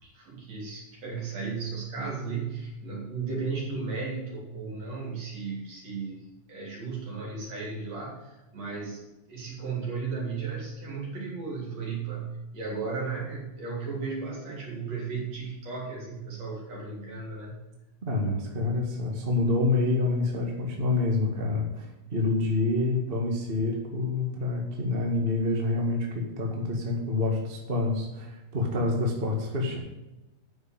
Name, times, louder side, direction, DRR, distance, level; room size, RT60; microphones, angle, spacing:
voice 1, 0.0-9.0 9.3-17.6, right 4 dB, 60° right, -3 dB, 4.5 m, -35 dB
voice 2, 18.1-29.8, left 3 dB, 25° right, 0 dB, 1.6 m, -27 dB
9.7 x 6.9 x 7.3 m, 1.0 s
omnidirectional pair, 3.3 m